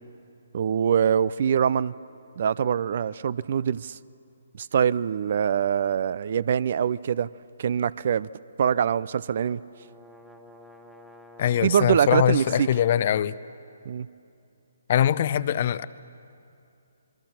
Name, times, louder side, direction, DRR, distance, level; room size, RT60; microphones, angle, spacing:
voice 1, 0.5-1.9 2.4-4.0 4.6-7.3 7.6-8.3 8.6-9.6 11.6-12.7 13.9-14.1, right 8 dB, 50° right, 21 dB, 0.4 m, -24 dB
sound 1, 9.3-13.2, equal, 5° right, 1.1 m, -50 dB
voice 2, 11.4-13.3 14.9-15.8, left 10 dB, 45° left, 17 dB, 0.6 m, -22 dB
26.5 x 22.0 x 5.9 m, 2.6 s
figure-of-eight pair, 140°, 0 cm